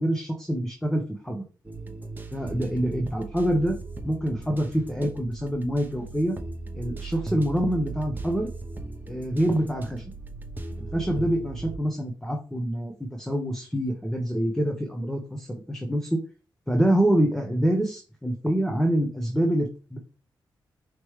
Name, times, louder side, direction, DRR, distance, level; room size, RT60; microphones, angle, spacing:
voice 1, 0.0-1.4 2.3-3.8 4.0-6.4 6.7-8.5 9.1-10.0 10.8-16.2 16.7-20.0, right 1 dB, 5° left, 2 dB, 1.0 m, -26 dB
sound 1, 1.6-11.8, right 3 dB, 25° right, 0.8 m, -38 dB
5.1 x 3.2 x 3.2 m, 0.33 s
cardioid pair, 75°, 8 cm